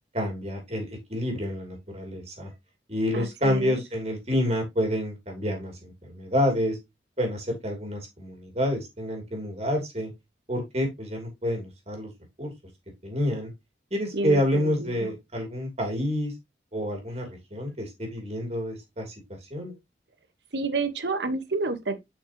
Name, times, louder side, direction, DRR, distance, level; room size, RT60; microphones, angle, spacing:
voice 1, 0.1-2.5 2.9-6.8 7.2-10.1 10.5-12.1 12.4-12.5 13.0-13.5 13.9-16.3 16.7-19.1 19.5-19.7, equal, 35° right, 2.9 m, -28 dB
voice 2, 3.1-3.8 14.1-15.1 20.5-22.0, right 3 dB, 70° right, 1.2 m, -29 dB
7.4 x 5.6 x 2.9 m
head